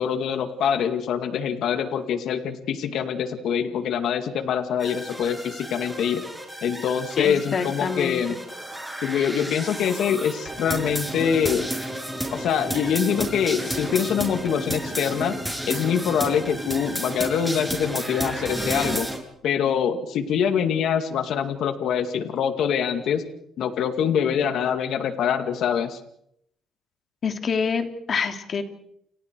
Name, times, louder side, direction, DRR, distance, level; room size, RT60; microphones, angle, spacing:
voice 1, 0.0-6.2 6.6-8.3 9.0-11.7 12.3-15.4 15.7-19.1 19.4-23.2 23.6-26.0, left 8 dB, 75° left, 7 dB, 2.3 m, -24 dB
sound 1, 4.8-19.2, right 1 dB, ahead, 7.1 m, -32 dB
voice 2, 7.2-8.4 27.2-28.6, left 5 dB, 50° left, 6 dB, 3.4 m, -26 dB
30.0 x 30.0 x 4.8 m, 0.74 s
cardioid pair, 90°, 0 cm